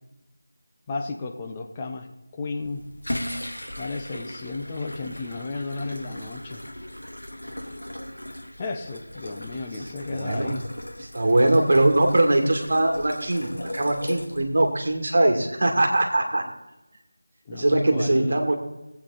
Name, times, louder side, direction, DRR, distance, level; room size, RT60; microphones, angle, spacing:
voice 1, 0.9-2.1 2.3-2.8 3.8-6.6 8.6-10.6 17.5-18.5, left 3 dB, 20° left, 4 dB, 0.9 m, -33 dB
sound 1, 2.6-14.9, left 1 dB, 85° left, 2.3 m, -37 dB
voice 2, 10.2-10.5 11.1-13.5 13.7-16.4 17.5-18.5, right 1 dB, 50° right, 3 dB, 2.2 m, -21 dB
19.0 x 8.4 x 4.1 m, 1.0 s
figure-of-eight pair, 165°, 0 cm